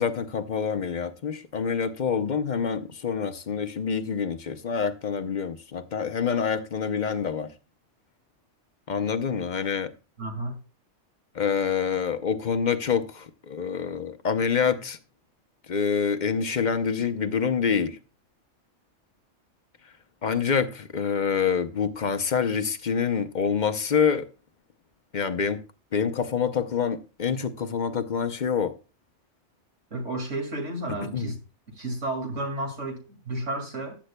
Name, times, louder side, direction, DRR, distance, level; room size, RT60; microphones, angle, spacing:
voice 1, 0.0-7.5 8.9-9.9 11.3-15.0 15.7-18.0 20.2-24.3 25.1-25.6 25.9-28.7 31.0-31.3, left 6 dB, 45° left, 0.7 m, -26 dB
voice 2, 10.2-10.6 29.9-31.4 31.7-34.0, right 2 dB, 80° right, 2.6 m, -32 dB
14.5 x 9.2 x 2.2 m
omnidirectional pair, 1.2 m